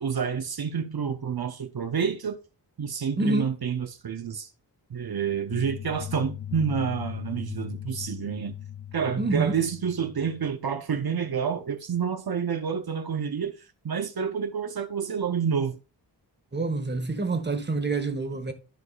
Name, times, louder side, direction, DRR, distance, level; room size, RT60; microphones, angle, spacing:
voice 1, 0.0-2.4 2.8-4.5 4.9-8.6 8.9-15.8, right 7 dB, 55° right, 0.9 m, -29 dB
voice 2, 3.2-3.5 9.2-9.5 16.5-18.5, right 3 dB, 25° right, 1.3 m, -27 dB
carla-de-sanctis-Drum delay, 5.5-10.5, left 10 dB, 45° left, 0.5 m, -38 dB
13.5 x 4.7 x 2.4 m
wide cardioid pair, 135°, 43 cm